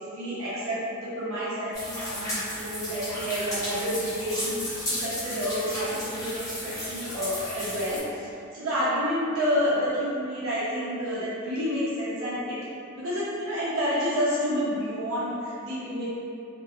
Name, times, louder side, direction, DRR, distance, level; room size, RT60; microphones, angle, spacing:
voice 1, 0.0-4.6 5.0-8.0 8.5-12.6 13.0-16.1, equal, 65° right, -11 dB, 0.6 m, -29 dB
sound 1, 1.7-8.0, left 1 dB, 15° left, 0.7 m, -34 dB
2.6 x 2.2 x 2.3 m, 2.6 s
head